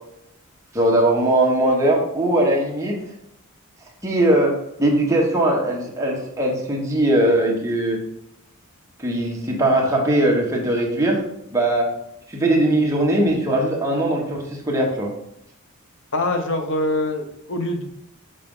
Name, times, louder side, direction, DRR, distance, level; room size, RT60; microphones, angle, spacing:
voice 1, 0.7-3.0 4.0-8.0 9.0-11.2 11.5-11.9 12.3-15.1, right 1 dB, 15° right, -2 dB, 1.3 m, -20 dB
voice 2, 16.1-17.8, left 1 dB, 60° left, 5 dB, 0.9 m, -24 dB
6.6 x 5.1 x 3.8 m, 0.79 s
head